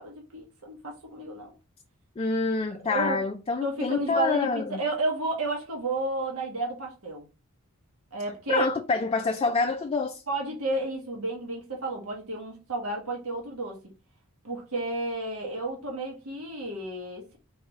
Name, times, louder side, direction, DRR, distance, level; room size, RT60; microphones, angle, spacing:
voice 1, 0.0-1.5 2.9-3.2 3.6-7.2 8.1-8.7 10.3-13.8 14.4-17.4, right 2 dB, 85° right, 1.2 m, -31 dB
voice 2, 2.2-4.8 8.5-10.2, left 4 dB, 25° left, 0.3 m, -27 dB
4.7 x 3.1 x 3.5 m
head